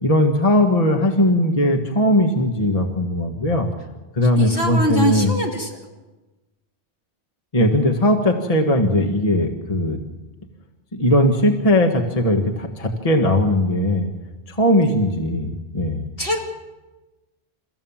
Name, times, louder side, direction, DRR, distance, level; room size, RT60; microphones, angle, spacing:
voice 1, 0.0-3.7 4.1-5.3 7.5-10.0 10.9-14.1 14.5-16.0, left 1 dB, 35° left, 3 dB, 1.7 m, -19 dB
voice 2, 4.4-5.7 16.2-16.4, equal, 60° left, -1 dB, 3.0 m, -22 dB
30.0 x 14.5 x 7.3 m, 1.1 s
omnidirectional pair, 1.1 m